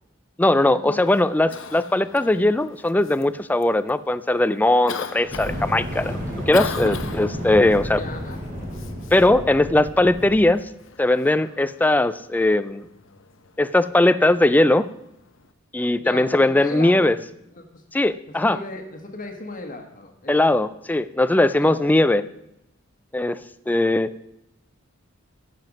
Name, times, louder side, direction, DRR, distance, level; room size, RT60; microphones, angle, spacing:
voice 1, 0.4-6.2 6.5-8.0 9.1-10.6 11.0-12.8 13.6-14.9 15.7-17.2 17.9-18.6 20.3-22.2 23.1-23.4 23.7-24.1, left 1 dB, 10° left, 14 dB, 0.3 m, -19 dB
Cough, 1.0-15.5, left 5 dB, 65° left, 0.8 m, -40 dB
Fire, 5.2-10.5, equal, 45° right, 4.1 m, -32 dB
voice 2, 7.9-8.4 16.0-17.1 17.5-17.8 18.3-20.4 21.6-22.0, left 2 dB, 40° left, 4 dB, 1.4 m, -36 dB
12.0 x 7.6 x 5.3 m, 0.82 s
head